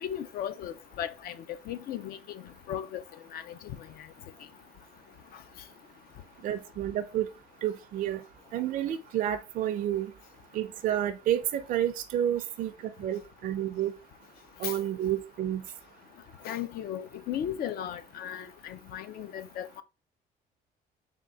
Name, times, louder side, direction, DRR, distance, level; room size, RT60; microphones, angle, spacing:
voice 1, 0.0-1.4 1.7-3.0 3.3-4.1 14.6-14.8 16.4-19.8, left 10 dB, 65° left, 0.5 m, -36 dB
voice 2, 6.4-7.3 7.6-8.2 8.5-10.1 10.5-12.7 13.0-13.9 14.6-15.6, right 11 dB, 55° right, 0.4 m, -30 dB
3.6 x 2.3 x 3.9 m
cardioid pair, 110°, 17 cm